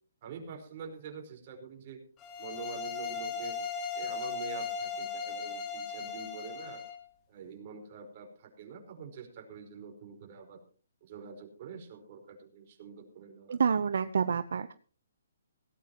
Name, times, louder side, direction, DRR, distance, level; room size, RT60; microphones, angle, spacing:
voice 1, 0.2-2.0 2.4-3.6 3.9-6.8 7.3-10.6 11.0-13.6, right 6 dB, 35° right, 3 dB, 4.7 m, -46 dB
sound 1, 2.2-7.0, left 5 dB, 15° left, 2.2 m, -37 dB
voice 2, 13.5-14.7, right 6 dB, 65° right, 12 dB, 0.8 m, -28 dB
17.5 x 17.0 x 3.0 m, 0.39 s
hypercardioid pair, 170°, 0 cm